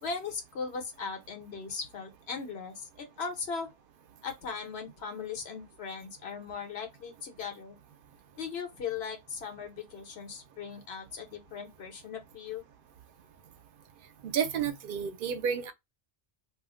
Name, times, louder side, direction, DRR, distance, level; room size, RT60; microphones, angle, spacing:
voice 1, 0.0-3.7 4.2-7.8 8.4-12.6, left 5 dB, 80° left, 1.1 m, -38 dB
voice 2, 14.2-15.7, right 7 dB, 65° right, 0.7 m, -31 dB
2.5 x 2.0 x 3.6 m
omnidirectional pair, 1.0 m